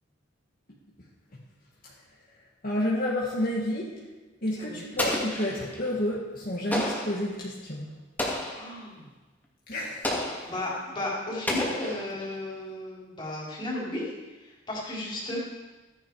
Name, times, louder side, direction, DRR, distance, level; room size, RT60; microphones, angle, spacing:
voice 1, 2.6-4.0 4.4-7.9 9.7-10.1, left 1 dB, 50° left, -5 dB, 2.2 m, -30 dB
voice 2, 4.5-4.9 8.5-9.1 10.4-14.1 14.7-15.4, left 1 dB, 25° left, -5 dB, 4.4 m, -34 dB
Explosion, 5.0-5.9 6.7-7.3 8.2-8.7 10.0-10.6 11.5-12.3, left 1 dB, 10° left, 2.4 m, -31 dB
16.0 x 11.0 x 4.9 m, 1.2 s
head